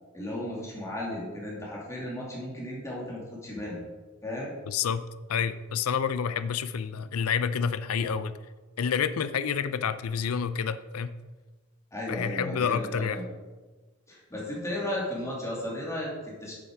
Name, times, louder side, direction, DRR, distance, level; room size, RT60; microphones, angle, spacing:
voice 1, 0.1-3.8 4.2-4.5 11.9-13.3 14.1-16.6, left 1 dB, 15° left, -4 dB, 2.3 m, -35 dB
voice 2, 4.7-5.0 5.3-8.4 8.8-11.1 12.1-13.2, left 7 dB, 85° left, 13 dB, 0.5 m, -28 dB
7.8 x 7.2 x 4.9 m, 1.3 s
head